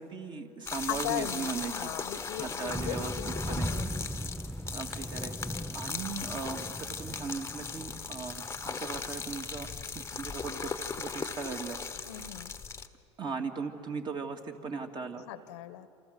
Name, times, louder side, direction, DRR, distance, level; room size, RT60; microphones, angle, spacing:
voice 1, 0.0-1.9 2.4-3.1 3.5-3.7 4.7-5.3 5.7-9.7 9.9-10.7 11.0-11.8 12.1-12.3 13.2-15.2, right 5 dB, 30° right, 4 dB, 2.6 m, -38 dB
sound 1, 0.7-12.9, left 5 dB, 15° left, 1.3 m, -38 dB
voice 2, 0.9-4.1 12.0-12.5 15.3-15.9, left 12 dB, 70° left, 13 dB, 1.3 m, -38 dB
sound 2, 2.7-10.7, equal, ahead, 0.6 m, -39 dB
28.0 x 27.5 x 6.9 m, 2.7 s
hypercardioid pair, 95°, 15 cm